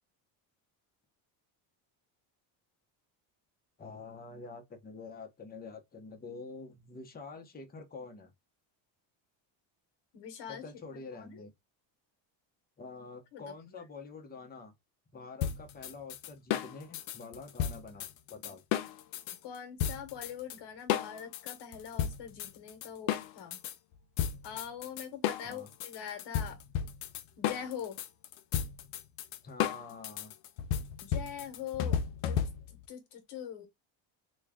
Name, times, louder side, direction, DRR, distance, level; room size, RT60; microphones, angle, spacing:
voice 1, 3.8-8.3 10.5-11.5 12.8-14.7 15.1-18.6 25.4-25.7 29.4-30.3, left 4 dB, 20° left, 0.8 m, -47 dB
voice 2, 10.1-10.6 11.1-11.4 13.3-13.4 19.4-23.6 24.4-26.6 27.4-28.0 31.0-32.0 32.3-32.4 32.9-33.7, left 8 dB, 60° left, 1.1 m, -42 dB
sound 1, 15.4-19.4 19.8-20.6 20.9-23.7 24.2-32.8, left 9 dB, 75° left, 0.6 m, -33 dB
3.0 x 2.3 x 3.5 m
cardioid pair, 120°, 46 cm